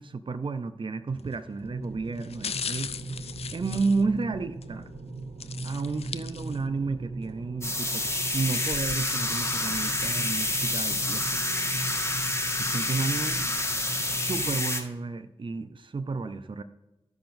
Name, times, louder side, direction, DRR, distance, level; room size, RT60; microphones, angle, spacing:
voice 1, 0.0-2.9 3.5-4.9 5.6-8.1 8.3-11.8 12.6-13.4 14.0-16.6, right 4 dB, 55° right, 10 dB, 0.6 m, -32 dB
sound 1, 1.2-1.5 2.2-4.7 5.4-6.9 7.2-7.3 8.1-10.3 10.8-10.9, left 7 dB, 80° left, 0.4 m, -39 dB
sound 2, 1.6-14.6, right 2 dB, 85° right, 0.9 m, -39 dB
sound 3, 7.6-14.8, left 2 dB, 25° left, 1.7 m, -28 dB
14.0 x 5.7 x 2.6 m, 1.1 s
cardioid pair, 40°, 10 cm